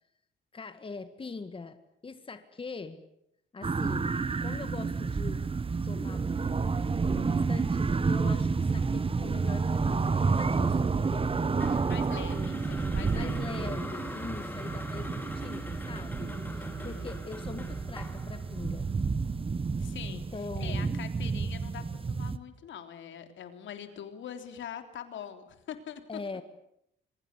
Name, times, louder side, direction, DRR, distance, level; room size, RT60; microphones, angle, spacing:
voice 1, 0.5-1.8 2.0-3.0 3.5-5.4 5.8-6.3 7.0-11.3 12.2-12.5 13.1-18.9 20.1-21.0 26.1-26.4, left 4 dB, 25° left, 10 dB, 1.8 m, -42 dB
sound 1, 3.6-22.4, right 4 dB, 30° right, 1.2 m, -30 dB
voice 2, 11.3-13.4 16.5-17.2 19.8-20.2 20.6-26.0, left 9 dB, 70° left, 7 dB, 3.5 m, -44 dB
sound 2, 11.6-19.8, left 1 dB, 10° left, 3.9 m, -43 dB
26.0 x 23.5 x 8.3 m, 0.78 s
cardioid pair, 90°, 20 cm